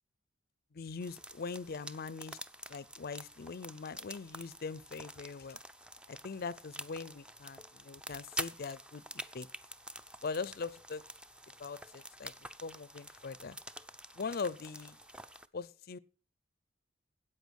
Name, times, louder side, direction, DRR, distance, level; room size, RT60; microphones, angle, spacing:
voice 1, 0.7-2.4 2.7-5.6 6.1-9.5 10.2-11.0 11.6-13.6 14.1-15.0 15.5-16.0, left 4 dB, 50° left, 0.5 m, -41 dB
sound 1, 1.0-15.5, right 1 dB, 5° right, 0.5 m, -47 dB
13.5 x 8.8 x 6.3 m
head